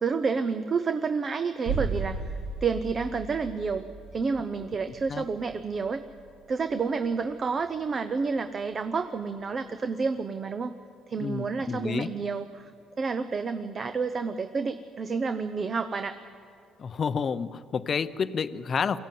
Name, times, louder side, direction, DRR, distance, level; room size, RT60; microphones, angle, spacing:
voice 1, 0.0-6.0 6.5-10.7 11.1-12.7 13.0-16.1, right 5 dB, 30° right, 9 dB, 0.8 m, -30 dB
sound 1, 1.6-7.4 7.6-7.7, right 4 dB, 75° right, 2.2 m, -36 dB
voice 2, 11.2-12.1 16.8-19.0, left 6 dB, 35° left, 13 dB, 0.7 m, -29 dB
23.0 x 15.5 x 9.4 m, 2.3 s
cardioid pair, 130°, 0 cm